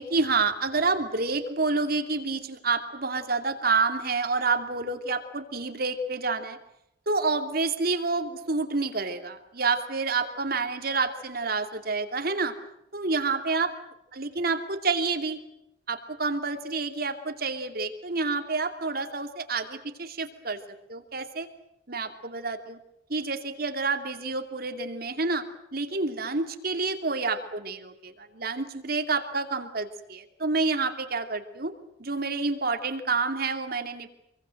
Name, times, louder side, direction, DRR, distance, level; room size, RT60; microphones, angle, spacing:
voice 1, 0.0-6.6 7.1-12.5 12.9-13.7 14.1-15.4 15.9-20.6 20.9-21.5 21.9-22.8 23.1-25.4 25.7-31.7 32.0-34.1, right 4 dB, 55° right, 7 dB, 2.7 m, -28 dB
27.0 x 23.0 x 7.8 m, 0.81 s
head